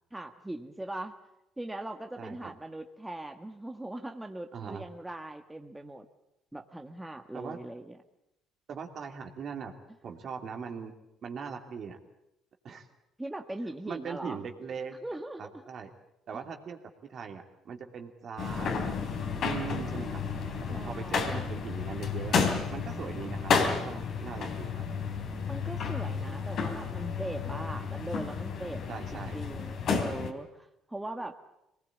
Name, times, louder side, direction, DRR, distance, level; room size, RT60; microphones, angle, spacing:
voice 1, 0.1-1.1 1.6-6.1 6.5-8.0 13.2-14.4 15.0-15.4 20.7-21.5 25.5-28.8 29.1-31.4, right 1 dB, 10° right, 5 dB, 1.8 m, -40 dB
voice 2, 2.2-2.5 4.5-4.8 7.3-7.6 8.7-9.7 10.0-10.9 11.2-12.0 12.6-12.9 13.8-14.9 15.4-15.9 16.3-16.8 17.1-19.0 19.4-20.3 20.7-22.4 22.7-24.8 28.9-29.4, right 6 dB, 55° right, 4 dB, 2.8 m, -40 dB
sound 1, 18.4-30.3, left 5 dB, 60° left, 3.4 m, -32 dB
23.5 x 19.0 x 8.6 m, 0.86 s
hypercardioid pair, 60°, 0 cm